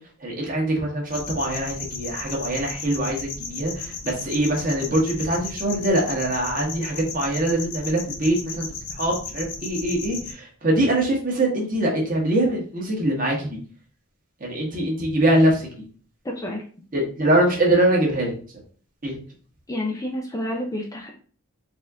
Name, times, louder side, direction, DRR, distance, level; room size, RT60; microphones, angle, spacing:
voice 1, 0.2-8.7 8.9-13.6 14.4-15.8 16.9-18.4 19.0-19.2, right 1 dB, 40° right, -2 dB, 1.3 m, -23 dB
sound 1, 1.1-10.3, left 4 dB, 55° left, 0.7 m, -35 dB
voice 2, 16.2-16.6 19.7-21.1, left 1 dB, 15° left, 1 dB, 0.5 m, -29 dB
4.1 x 2.6 x 3.5 m, 0.42 s
head